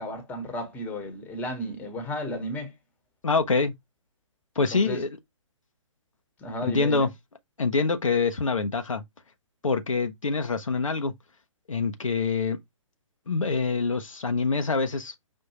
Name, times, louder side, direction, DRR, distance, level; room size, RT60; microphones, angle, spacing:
voice 1, 0.0-2.7 4.5-5.0 6.4-7.1, equal, 10° left, 1.1 m, -34 dB
voice 2, 3.2-3.7 4.6-5.1 6.6-7.1 7.6-9.0 9.6-11.1 11.7-12.6 13.3-15.1, left 4 dB, 80° left, 0.8 m, -25 dB
5.3 x 2.6 x 2.9 m
figure-of-eight pair, 130°, 17 cm